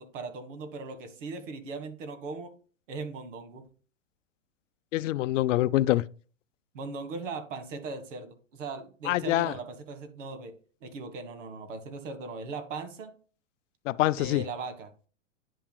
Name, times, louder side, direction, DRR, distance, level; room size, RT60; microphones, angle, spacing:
voice 1, 0.0-2.5 2.9-3.6 6.7-13.1 14.1-15.1, right 4 dB, 75° right, 1.6 m, -39 dB
voice 2, 4.9-6.0 9.1-9.5 13.9-14.4, left 15 dB, 75° left, 0.5 m, -25 dB
9.9 x 5.8 x 2.2 m
hypercardioid pair, 130°, 37 cm